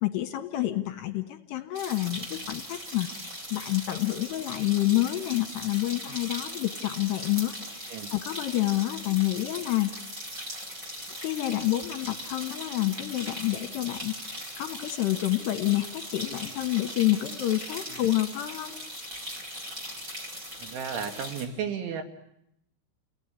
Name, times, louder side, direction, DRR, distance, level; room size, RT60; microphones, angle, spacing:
voice 1, 0.0-9.9 11.2-18.7, left 16 dB, 70° left, 6 dB, 3.2 m, -28 dB
sound 1, 1.8-21.4, equal, 15° right, 5.5 m, -39 dB
voice 2, 20.6-22.0, right 7 dB, 75° right, 5 dB, 4.2 m, -33 dB
30.0 x 18.0 x 9.9 m, 0.79 s
omnidirectional pair, 5.7 m